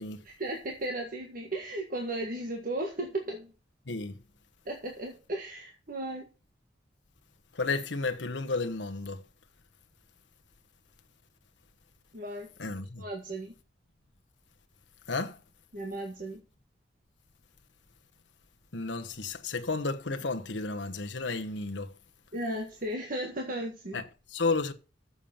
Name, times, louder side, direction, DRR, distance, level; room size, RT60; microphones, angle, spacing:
voice 1, 0.2-3.5 4.6-6.3 12.1-12.5 13.0-13.5 15.7-16.4 22.3-24.0, right 1 dB, 50° right, 1.8 m, -35 dB
voice 2, 3.9-4.2 7.5-9.2 12.6-13.0 15.1-15.4 18.7-21.9 23.9-24.7, left 3 dB, 85° left, 1.1 m, -32 dB
7.3 x 7.1 x 7.2 m
head